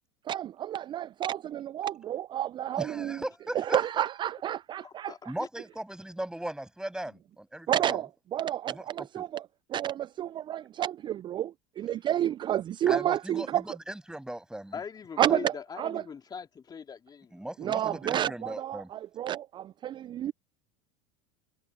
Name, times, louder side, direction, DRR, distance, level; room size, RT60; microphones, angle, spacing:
voice 1, 0.3-3.2 3.6-5.1 7.7-9.4 9.7-13.6 15.2-16.0 17.6-20.3, right 11 dB, 35° right, 0.4 m, -30 dB
voice 2, 2.8-4.0 5.3-8.0 8.7-9.2 12.9-14.8 17.3-18.9, right 1 dB, 5° right, 7.2 m, -38 dB
voice 3, 4.8-5.5 14.7-17.4, left 6 dB, 30° left, 3.2 m, -42 dB
hypercardioid pair, 85°, 14 cm